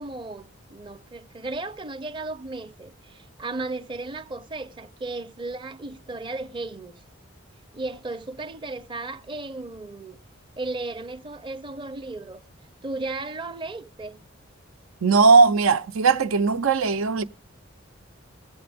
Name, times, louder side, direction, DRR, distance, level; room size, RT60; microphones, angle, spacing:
voice 1, 0.0-6.9 7.7-10.2 10.6-12.4 12.8-14.2, right 2 dB, 25° right, 0.6 m, -35 dB
voice 2, 15.0-17.2, right 4 dB, 90° right, 0.6 m, -18 dB
20.5 x 7.7 x 3.4 m
head